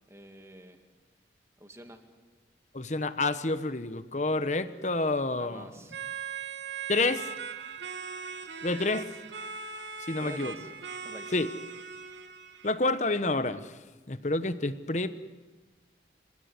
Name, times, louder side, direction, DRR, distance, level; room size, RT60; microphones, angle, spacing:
voice 1, 0.1-0.8 1.6-2.0 5.4-6.0 10.2-10.7 11.0-11.3, right 1 dB, 15° right, 6 dB, 2.2 m, -46 dB
voice 2, 2.7-5.7 6.9-7.3 8.6-9.1 10.1-10.5 11.3-11.5 12.6-13.6 14.1-15.1, left 2 dB, 40° left, 12 dB, 1.1 m, -28 dB
sound 1, 5.9-12.7, right 6 dB, 75° right, 1.7 m, -40 dB
29.5 x 17.0 x 9.6 m, 1.3 s
head